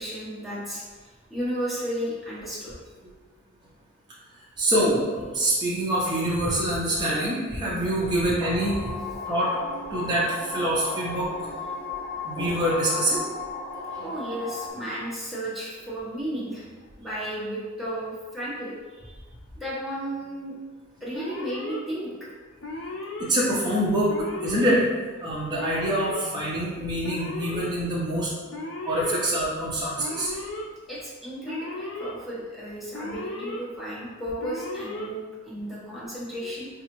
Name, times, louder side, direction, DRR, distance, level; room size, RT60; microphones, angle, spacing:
voice 1, 0.0-2.7 14.0-16.7 17.0-19.2 19.6-20.6 21.0-22.1 30.9-36.7, equal, ahead, -9 dB, 0.9 m, -34 dB
voice 2, 4.6-8.8 9.3-9.6 9.9-11.5 12.2-13.2 13.9-14.1 23.2-24.1 24.4-24.8 25.2-28.3 28.8-30.3, right 1 dB, 20° right, -7 dB, 0.5 m, -25 dB
sound 1, 8.4-14.7, left 3 dB, 40° left, 1.4 m, -35 dB
Alarm, 21.1-21.8 22.6-23.3 24.1-24.7 25.6-26.2 27.0-27.7 28.5-29.2 30.0-30.6 31.4-32.1 32.9-33.6 34.4-35.1, left 2 dB, 65° left, 0.5 m, -35 dB
4.0 x 2.4 x 3.0 m, 1.4 s
head